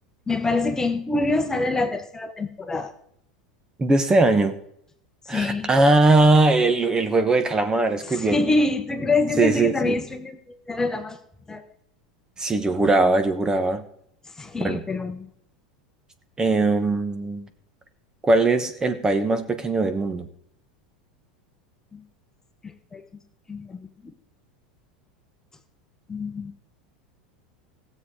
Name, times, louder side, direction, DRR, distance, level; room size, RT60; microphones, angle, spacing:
voice 1, 0.3-2.9 5.3-5.7 8.1-11.2 11.5-11.6 14.4-15.3 21.9-22.0 22.6-23.1 23.5-24.1 26.1-26.5, left 2 dB, 15° left, 7 dB, 1.3 m, -26 dB
voice 2, 3.8-4.6 5.3-8.4 9.4-10.0 12.4-13.8 14.6-14.8 16.4-17.5 18.2-20.3, right 2 dB, 20° right, 8 dB, 1.3 m, -20 dB
16.0 x 7.6 x 5.0 m, 0.69 s
hypercardioid pair, 90°, 4 cm